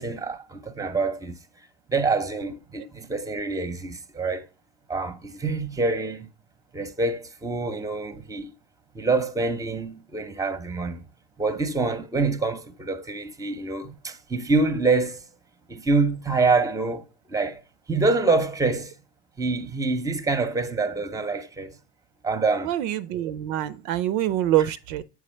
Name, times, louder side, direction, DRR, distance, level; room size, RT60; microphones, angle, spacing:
voice 1, 0.0-4.5 4.9-6.3 6.7-8.5 8.9-11.1 11.4-15.2 15.7-17.0 17.3-17.6 17.9-18.9 19.4-21.8 22.2-22.7, right 3 dB, 10° right, 0.7 m, -26 dB
voice 2, 22.6-25.0, right 13 dB, 60° right, 0.5 m, -25 dB
6.8 x 4.7 x 3.2 m
hypercardioid pair, 80°, 34 cm